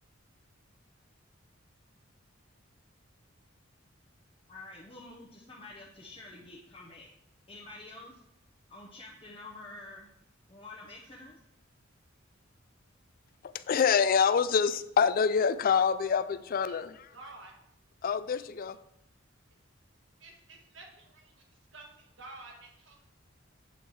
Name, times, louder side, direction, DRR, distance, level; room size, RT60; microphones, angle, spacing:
voice 1, 4.5-7.1 7.5-8.2 8.7-10.1 10.5-11.4, left 2 dB, 25° left, -3 dB, 0.8 m, -48 dB
voice 2, 13.7-16.9 18.0-18.8, left 6 dB, 45° left, 15 dB, 0.3 m, -26 dB
voice 3, 17.1-17.5 20.2-21.4 21.7-23.0, right 2 dB, 65° right, 1 dB, 1.5 m, -50 dB
8.0 x 4.5 x 4.7 m, 0.82 s
head